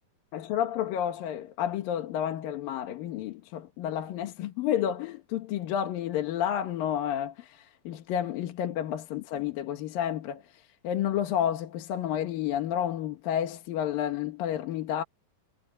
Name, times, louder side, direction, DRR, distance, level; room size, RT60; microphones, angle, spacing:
voice 1, 0.3-15.0, left 10 dB, 65° left, 2.9 m, -30 dB
omnidirectional pair, 4.6 m